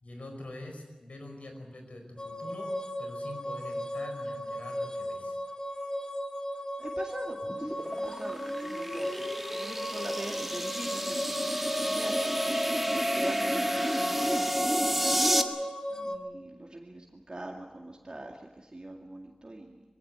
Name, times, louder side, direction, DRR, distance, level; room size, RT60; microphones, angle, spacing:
voice 1, 0.0-5.4 15.9-16.2, left 1 dB, 80° left, 4 dB, 5.0 m, -45 dB
sound 1, 2.2-16.2, equal, 35° left, 2.2 m, -36 dB
voice 2, 6.8-7.8 8.0-12.1 12.8-15.1 16.0-19.8, right 2 dB, 40° right, 0 dB, 2.2 m, -43 dB
sound 2, 7.4-15.4, equal, 5° right, 1.8 m, -30 dB
22.0 x 16.5 x 9.5 m, 1.2 s
wide cardioid pair, 55°, 2 cm